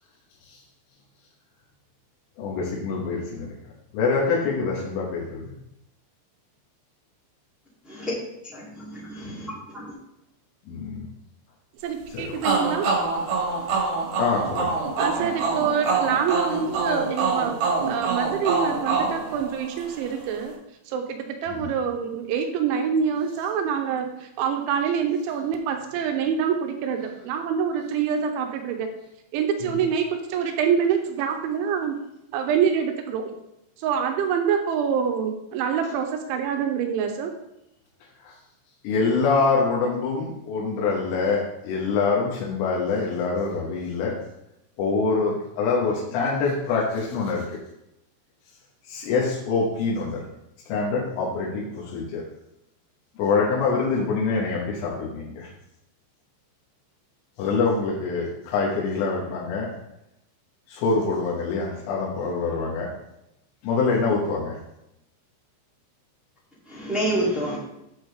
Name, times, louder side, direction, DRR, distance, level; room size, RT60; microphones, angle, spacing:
voice 1, 2.4-3.6 3.9-5.5 10.7-11.1 12.1-12.4 14.2-14.7 21.5-21.7 29.6-29.8 38.2-38.4 38.8-44.2 44.8-47.6 48.9-50.2 50.7-52.2 53.2-55.5 57.4-59.7 60.7-62.9 63.6-64.6, left 4 dB, 90° left, -3 dB, 3.8 m, -25 dB
voice 2, 8.4-9.9 66.6-67.6, right 1 dB, ahead, -8 dB, 0.8 m, -29 dB
voice 3, 11.8-12.9 15.0-17.6 17.9-20.5 20.9-28.9 29.3-32.0 32.3-33.3 33.8-37.3, right 7 dB, 85° right, 4 dB, 3.1 m, -26 dB
sound 1, 12.4-20.0, right 4 dB, 60° right, 3.3 m, -25 dB
8.7 x 6.4 x 3.4 m, 0.85 s
omnidirectional pair, 5.5 m